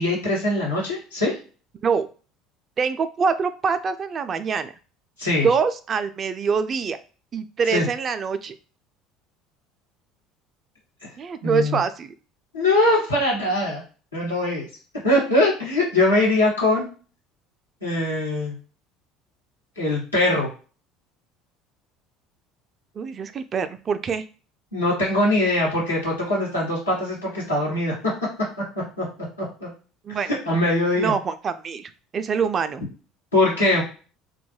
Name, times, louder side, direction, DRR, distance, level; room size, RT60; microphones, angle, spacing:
voice 1, 0.0-1.3 5.2-5.5 7.7-7.9 11.4-11.8 12.5-13.8 14.1-14.7 15.0-16.8 17.8-18.5 19.8-20.5 24.7-27.9 29.0-29.1 29.6-29.7 30.1-31.1 33.3-33.8, left 1 dB, 90° left, -5 dB, 1.1 m, -22 dB
voice 2, 2.8-4.7 5.4-7.0 7.3-8.5 11.2-12.1 23.0-24.2 30.0-30.4 31.0-32.8, right 6 dB, 35° right, 11 dB, 0.3 m, -25 dB
2.3 x 2.1 x 3.2 m, 0.36 s
figure-of-eight pair, 65°, 0 cm